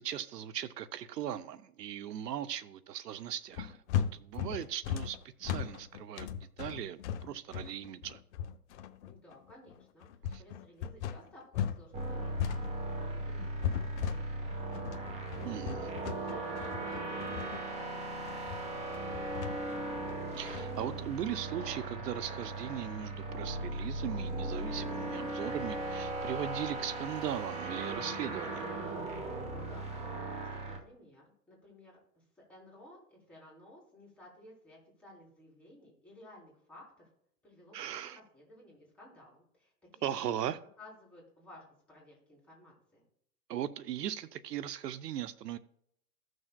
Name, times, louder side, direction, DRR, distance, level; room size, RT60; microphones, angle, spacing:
voice 1, 0.0-8.2 10.3-10.4 15.4-15.9 20.3-28.7 37.7-38.2 40.0-40.6 43.5-45.6, right 10 dB, 85° right, 0.7 m, -38 dB
sound 1, 3.5-11.8 12.1-20.8, left 9 dB, 45° left, 0.8 m, -37 dB
voice 2, 9.1-10.1 10.4-18.7 19.1-19.5 29.4-37.1 37.4-40.3 40.8-43.0, left 1 dB, 5° left, 3.5 m, -56 dB
sound 2, 11.9-30.8, right 2 dB, 15° right, 0.9 m, -38 dB
15.5 x 6.3 x 2.2 m
hypercardioid pair, 135°, 47 cm